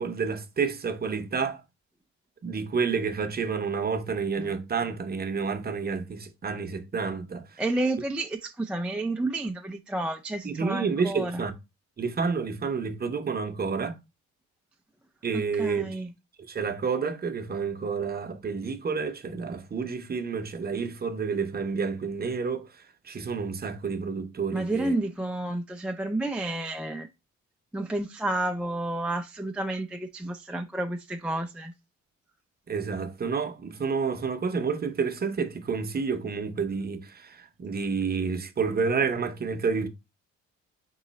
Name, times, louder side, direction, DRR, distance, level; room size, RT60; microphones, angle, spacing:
voice 1, 0.0-1.6 2.4-7.6 10.4-11.5 12.0-14.0 15.2-16.0 16.5-22.7 23.0-24.9 32.7-39.9, right 5 dB, 30° right, 0.7 m, -29 dB
voice 2, 7.6-11.4 15.3-16.1 24.5-27.1 27.7-31.7, right 2 dB, 5° right, 0.3 m, -30 dB
3.7 x 3.1 x 4.0 m
cardioid pair, 90°, 30 cm